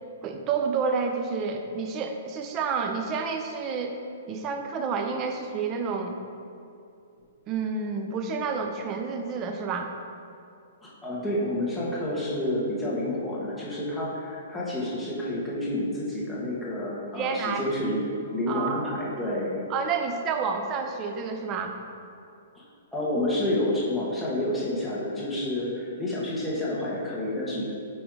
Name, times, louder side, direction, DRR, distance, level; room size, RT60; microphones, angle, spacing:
voice 1, 0.2-4.0 4.3-6.2 7.5-9.9 17.1-17.7 18.5-18.8 19.7-21.8, right 5 dB, 25° right, 4 dB, 0.7 m, -29 dB
voice 2, 10.8-18.0 18.3-19.6 22.9-27.6, left 1 dB, 5° left, -8 dB, 1.7 m, -29 dB
8.6 x 3.4 x 4.8 m, 2.5 s
hypercardioid pair, 145°, 0 cm